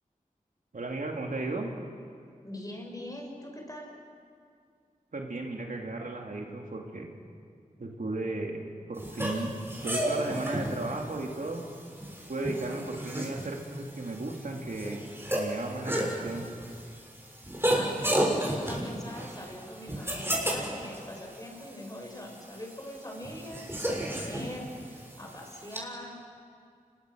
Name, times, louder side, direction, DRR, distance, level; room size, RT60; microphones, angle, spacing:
voice 1, 0.7-1.7 5.1-7.1 7.8-9.6 9.8-11.6 12.3-15.0 15.3-16.5, right 2 dB, 75° right, 1 dB, 2.7 m, -35 dB
voice 2, 2.4-3.9 17.7-26.2, left 1 dB, 25° left, 0 dB, 6.3 m, -42 dB
sound 1, 9.0-25.8, right 1 dB, 15° right, 6.4 m, -33 dB
29.0 x 21.0 x 6.4 m, 2.2 s
cardioid pair, 40°, 14 cm